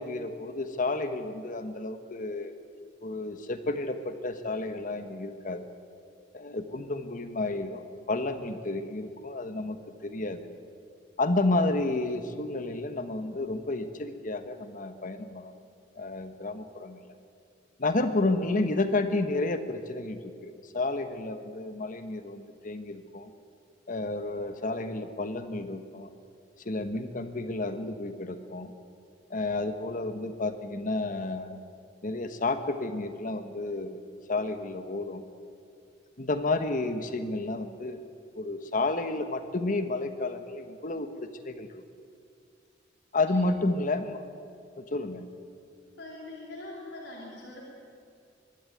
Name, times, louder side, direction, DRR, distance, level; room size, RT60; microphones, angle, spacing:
voice 1, 0.0-2.5 3.0-5.6 6.3-7.8 8.1-10.4 11.2-15.5 15.9-17.1 17.8-23.3 23.9-26.1 26.6-28.7 29.3-31.6 32.0-35.2 36.2-38.0 38.4-41.8 43.1-44.3 44.8-45.3, left 2 dB, 45° left, 9 dB, 1.3 m, -31 dB
voice 2, 46.0-47.6, left 2 dB, 75° left, -4 dB, 3.8 m, -43 dB
23.5 x 12.0 x 9.3 m, 2.4 s
head